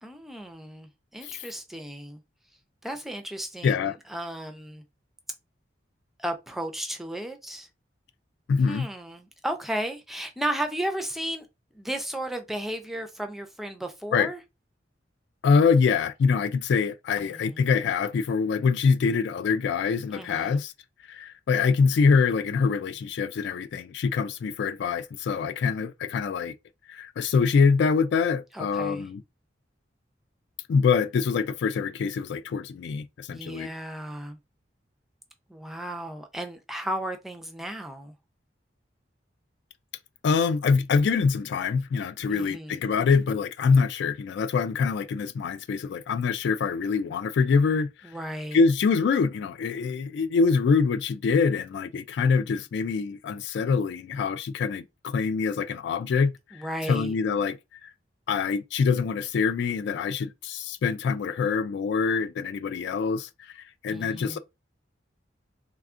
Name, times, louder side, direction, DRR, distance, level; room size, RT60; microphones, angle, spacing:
voice 1, 0.0-2.2 2.8-4.8 6.2-7.7 8.7-11.5 11.7-14.4 17.2-17.7 20.1-20.6 28.5-29.1 33.3-34.4 35.5-38.1 42.3-42.8 48.0-48.6 56.5-57.1 63.9-64.4, right 1 dB, ahead, 0.4 m, -34 dB
voice 2, 3.6-4.0 8.5-8.9 14.1-14.3 15.4-20.7 21.1-26.5 26.9-29.2 30.7-33.7 40.2-48.1 48.5-56.6 56.9-57.6 57.8-57.9 58.3-64.4, left 5 dB, 65° left, 0.3 m, -25 dB
3.4 x 2.3 x 2.5 m
head